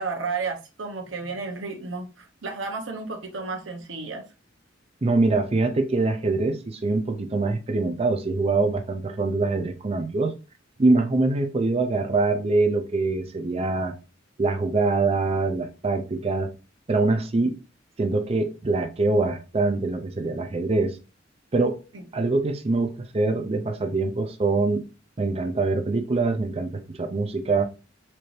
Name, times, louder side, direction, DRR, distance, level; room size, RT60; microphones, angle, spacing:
voice 1, 0.0-4.2 21.9-22.0, right 4 dB, 70° right, 0.9 m, -32 dB
voice 2, 5.0-10.3 10.8-13.9 14.4-16.5 16.9-17.5 18.0-21.0 21.5-21.8 22.1-24.8 25.2-27.7, right 3 dB, 30° right, 0.5 m, -24 dB
4.4 x 2.6 x 3.1 m
head